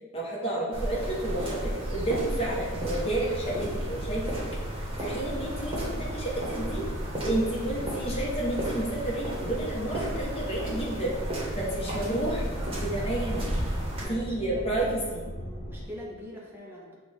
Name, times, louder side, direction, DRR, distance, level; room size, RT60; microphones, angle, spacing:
voice 1, 0.1-4.4 4.8-6.8 7.2-13.5 14.1-15.2, right 1 dB, 30° left, -5 dB, 1.2 m, -31 dB
sound 1, 0.7-14.0, right 1 dB, 30° right, 1.2 m, -34 dB
sound 2, 2.2-15.9, equal, 55° left, 0.7 m, -38 dB
voice 2, 13.9-15.0 15.4-17.0, equal, 10° right, -5 dB, 0.8 m, -43 dB
6.1 x 2.5 x 3.4 m, 1.4 s
head